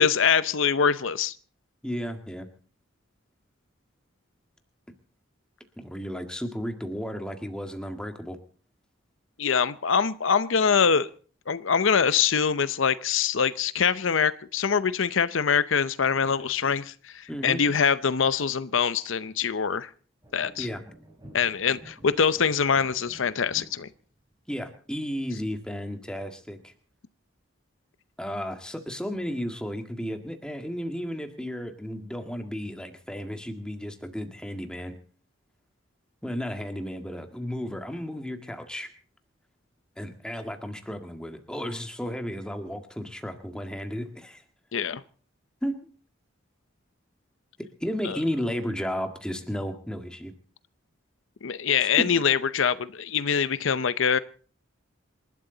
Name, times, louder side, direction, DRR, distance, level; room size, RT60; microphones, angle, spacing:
voice 1, 0.0-1.3 9.4-11.1 11.5-19.9 20.3-20.7 21.3-23.9 44.7-45.0 48.0-48.2 51.4-54.2, left 6 dB, 70° left, 15 dB, 0.7 m, -24 dB
voice 2, 1.8-2.5 5.8-8.4 17.3-17.6 20.6-20.8 24.5-26.7 28.2-35.0 36.2-38.9 40.0-44.4 45.6-45.9 47.8-50.3 51.8-52.1, equal, 5° left, 5 dB, 1.8 m, -33 dB
sound 1, 20.2-25.6, right 1 dB, 20° right, 4.3 m, -50 dB
27.5 x 12.5 x 3.9 m, 0.42 s
head